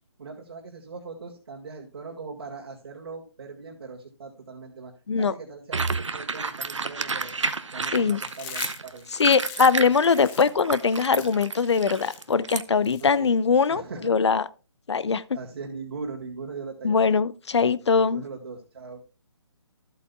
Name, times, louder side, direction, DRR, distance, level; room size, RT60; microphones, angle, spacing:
voice 1, 0.2-4.9 5.2-7.3 7.7-9.1 13.0-13.3 13.7-14.1 15.3-17.2 17.9-19.0, right 4 dB, 55° right, 2.0 m, -40 dB
Chewing Dog Eats Crunchy Crackers, 5.7-12.6, right 4 dB, 80° right, 0.8 m, -31 dB
Chewing mastication, 8.2-13.7, left 10 dB, 15° left, 0.6 m, -43 dB
voice 2, 9.1-14.5 14.9-15.2 16.8-18.2, left 5 dB, 65° left, 0.6 m, -22 dB
14.0 x 8.3 x 2.3 m
figure-of-eight pair, 145°, 16 cm